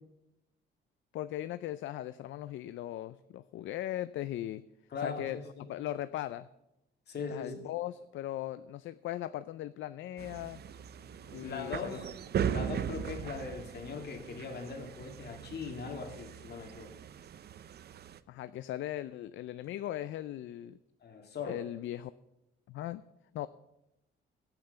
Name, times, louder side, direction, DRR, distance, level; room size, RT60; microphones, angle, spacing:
voice 1, 1.1-4.6 5.0-5.4 5.7-6.5 7.3-10.6 11.3-12.0 18.3-20.8 21.4-22.1 22.7-23.0 23.3-23.5, left 13 dB, 75° left, 15 dB, 0.5 m, -38 dB
voice 2, 4.9-5.7 7.1-7.6 11.4-12.1 12.5-16.9 21.0-21.6, left 4 dB, 55° left, 3 dB, 2.7 m, -40 dB
sound 1, 10.2-18.2, right 8 dB, 55° right, 0.6 m, -39 dB
17.0 x 5.8 x 6.9 m, 0.90 s
cardioid pair, 90°, 20 cm